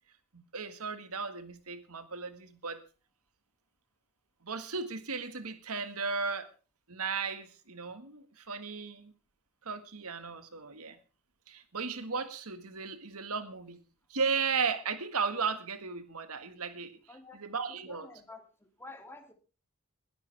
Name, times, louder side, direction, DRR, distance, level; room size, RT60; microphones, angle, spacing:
voice 1, 0.3-2.8 4.4-6.5 6.9-9.1 9.7-11.0 11.5-13.8 14.1-17.0 17.4-18.1, right 5 dB, 80° right, 1.8 m, -35 dB
voice 2, 17.1-17.4 17.7-19.3, left 3 dB, 10° left, 2.6 m, -50 dB
21.0 x 12.5 x 3.4 m
head